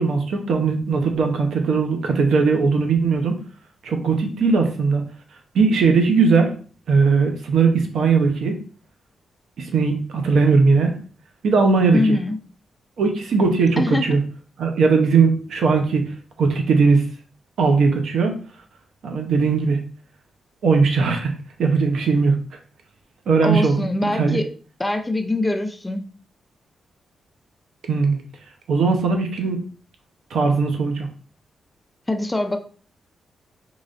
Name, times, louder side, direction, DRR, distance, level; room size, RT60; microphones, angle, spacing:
voice 1, 0.0-3.4 3.8-5.1 5.5-6.5 6.9-8.6 9.6-11.0 11.4-12.2 13.0-14.2 14.6-16.1 16.4-17.0 17.6-18.4 19.0-19.8 20.6-21.3 21.6-22.4 23.3-23.8 24.2-24.4 27.9-28.2 28.7-29.6 30.3-31.1, right 4 dB, 80° right, 3 dB, 0.8 m, -19 dB
voice 2, 11.9-12.4 13.8-14.2 23.4-24.5 24.8-26.1 32.1-32.6, left 2 dB, 15° left, 5 dB, 0.4 m, -23 dB
3.9 x 3.1 x 2.5 m, 0.42 s
cardioid pair, 100°, 0 cm